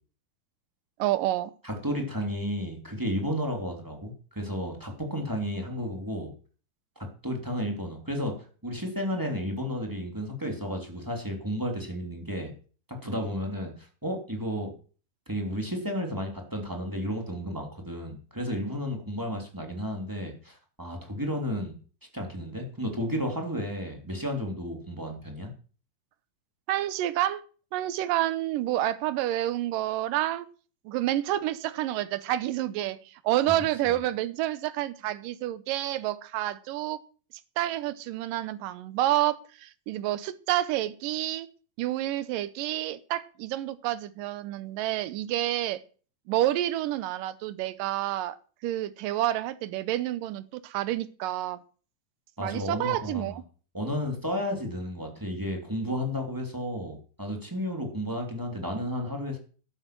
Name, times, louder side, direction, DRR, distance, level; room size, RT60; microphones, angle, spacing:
voice 1, 1.0-1.5 26.7-27.4 27.7-30.5 30.9-37.0 37.6-41.5 41.8-45.8 46.3-48.4 48.6-51.6 52.4-53.4, right 14 dB, 85° right, 15 dB, 2.5 m, -29 dB
voice 2, 1.6-6.3 7.0-12.5 12.9-14.7 15.3-21.7 22.1-25.5 52.4-53.4 53.7-59.4, equal, 5° right, 2 dB, 2.5 m, -32 dB
12.0 x 9.9 x 6.1 m, 0.40 s
omnidirectional pair, 3.8 m